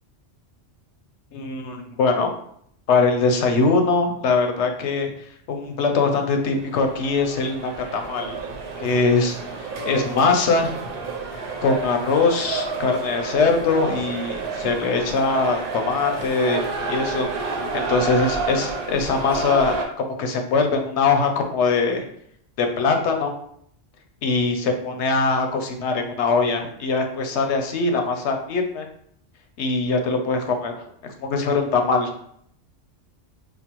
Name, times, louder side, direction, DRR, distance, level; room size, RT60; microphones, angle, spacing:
voice 1, 1.3-2.3 2.9-5.1 5.5-8.4 8.8-9.4 9.8-10.7 11.3-17.3 17.7-22.0 22.6-23.3 24.2-28.9 29.6-30.7 31.0-32.1, left 4 dB, 90° left, 4 dB, 0.9 m, -22 dB
sound 1, 6.2-19.8, right 4 dB, 60° right, 0.8 m, -30 dB
5.4 x 2.0 x 3.0 m, 0.67 s
omnidirectional pair, 1.1 m